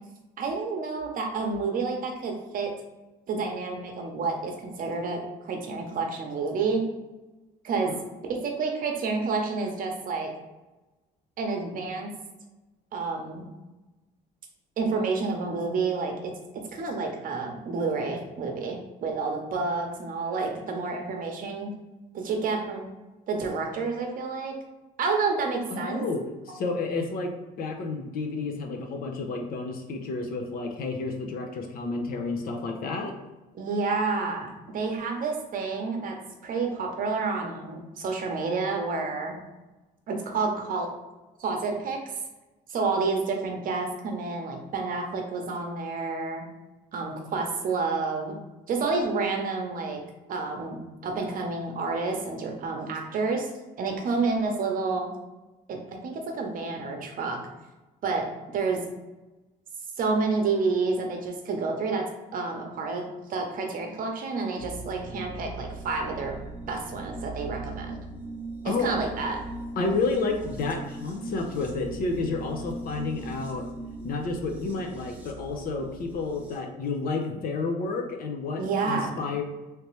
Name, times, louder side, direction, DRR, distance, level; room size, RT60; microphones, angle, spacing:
voice 1, 0.4-2.7 3.3-5.2 5.4-6.8 7.6-7.9 8.3-10.3 11.4-12.1 12.9-13.4 14.8-16.3 16.7-21.7 22.1-22.8 23.3-24.5 25.0-26.0 33.5-36.2 36.4-39.3 40.1-40.9 41.4-42.0 42.7-46.4 46.9-48.3 48.7-50.0 50.3-50.8 51.0-53.5 53.8-55.1 55.7-57.4 58.0-58.3 58.5-58.8 60.0-62.0 62.3-63.0 63.3-66.4 66.7-67.9 68.6-69.4 78.6-79.2, right 4 dB, 55° right, 2 dB, 0.8 m, -29 dB
voice 2, 25.7-27.3 27.6-33.1 68.6-69.0 69.8-73.7 74.0-79.4, left 3 dB, 60° left, 3 dB, 0.7 m, -30 dB
sound 1, 64.6-76.6, right 2 dB, 10° right, 0.7 m, -40 dB
3.3 x 2.8 x 3.2 m, 1.1 s
cardioid pair, 110°, 17 cm